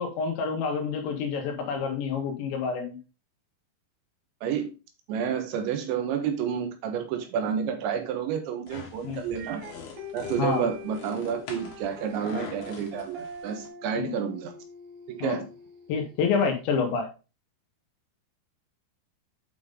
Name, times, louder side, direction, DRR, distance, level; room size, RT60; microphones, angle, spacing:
voice 1, 0.0-3.0 9.0-9.2 10.4-10.7 14.0-14.1 15.2-15.4 15.9-17.1, left 5 dB, 80° left, 3.5 m, -28 dB
voice 2, 4.4-4.7 5.1-9.6 10.1-14.5 15.1-15.5, right 7 dB, 85° right, 3.6 m, -30 dB
sound 1, 8.7-13.7, left 5 dB, 60° left, 3.4 m, -44 dB
sound 2, 9.4-16.4, left 2 dB, 60° right, 3.2 m, -44 dB
8.6 x 5.3 x 3.6 m
omnidirectional pair, 5.1 m